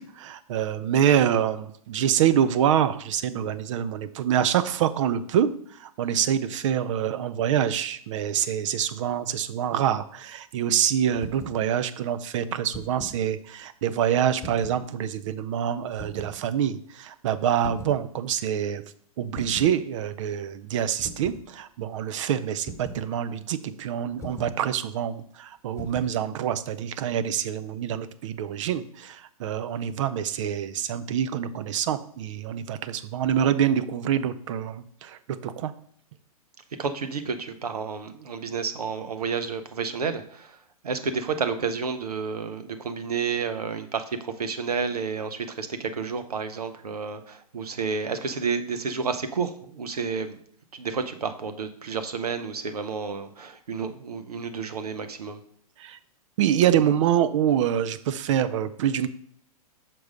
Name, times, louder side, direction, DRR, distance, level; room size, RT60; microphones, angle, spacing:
voice 1, 0.0-5.5 5.8-18.8 19.2-35.7 55.8-56.0 56.4-59.1, right 9 dB, 55° right, 13 dB, 0.6 m, -26 dB
sound 1, 11.1-11.6 12.5-13.2 14.4-14.9 15.9-16.4 17.6-18.0 19.3-19.8 21.0-21.5 22.7-23.1 24.2-24.6 25.8-26.2, left 1 dB, 15° left, 1.2 m, -40 dB
voice 2, 36.8-40.6 40.8-50.4 50.7-55.4, right 5 dB, 85° right, 10 dB, 0.9 m, -30 dB
6.0 x 4.7 x 5.2 m, 0.63 s
hypercardioid pair, 115°, 19 cm